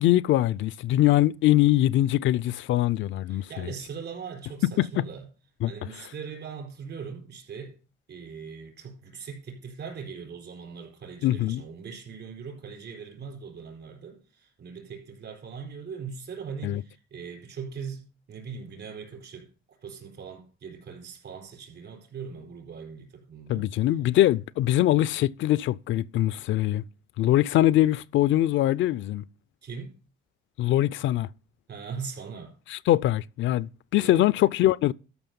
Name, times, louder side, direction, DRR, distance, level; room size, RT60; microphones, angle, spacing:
voice 1, 0.0-3.7 4.8-5.0 5.6-5.7 11.2-11.6 16.6-16.8 23.5-26.8 27.2-29.2 30.6-31.3 32.7-34.9, left 14 dB, 75° left, 0.4 m, -23 dB
voice 2, 3.3-5.2 5.7-7.8 8.1-23.7 29.6-29.9 31.7-32.5 33.9-34.3, right 6 dB, 60° right, 4.3 m, -40 dB
13.0 x 5.7 x 5.3 m
cardioid pair, 90°, 20 cm